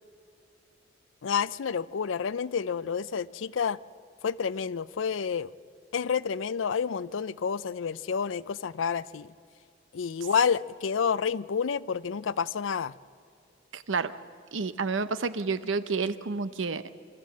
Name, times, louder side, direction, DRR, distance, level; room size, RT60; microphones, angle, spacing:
voice 1, 1.2-3.8 4.2-5.5 5.9-9.3 9.9-12.9, left 6 dB, 85° left, 18 dB, 0.5 m, -29 dB
voice 2, 13.7-14.1 14.5-16.8, right 4 dB, 85° right, 13 dB, 0.8 m, -30 dB
25.0 x 13.5 x 7.6 m, 2.4 s
head